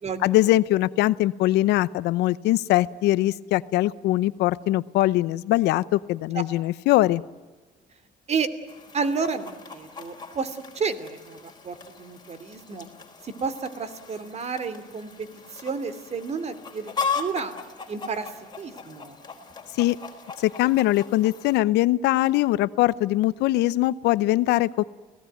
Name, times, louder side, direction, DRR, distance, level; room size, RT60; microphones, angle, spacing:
voice 1, 0.2-7.2 19.8-20.0 20.4-24.8, left 16 dB, 85° left, 18 dB, 0.8 m, -22 dB
Chicken rooster, 8.7-21.6, left 5 dB, 25° left, 4.1 m, -38 dB
voice 2, 8.9-11.4 11.6-12.9 13.2-17.5 17.9-18.3 18.6-19.2, right 5 dB, 40° right, 13 dB, 2.9 m, -31 dB
29.5 x 17.5 x 9.3 m, 1.3 s
cardioid pair, 110°, 17 cm